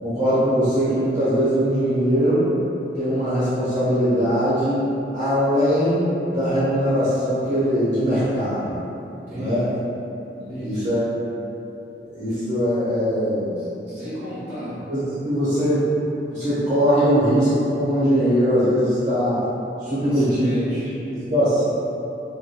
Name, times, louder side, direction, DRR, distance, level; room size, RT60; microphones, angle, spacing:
voice 1, 0.0-2.5 2.9-4.9 5.1-8.8 9.3-9.7 10.3-11.0 12.0-13.6 14.9-15.9 16.3-19.4 19.8-20.5 21.0-21.6, equal, 40° right, -13 dB, 1.1 m, -21 dB
voice 2, 9.3-9.6 10.5-10.8 13.9-14.8 20.0-20.8, equal, 10° right, -17 dB, 0.6 m, -32 dB
2.6 x 2.5 x 2.2 m, 2.8 s
head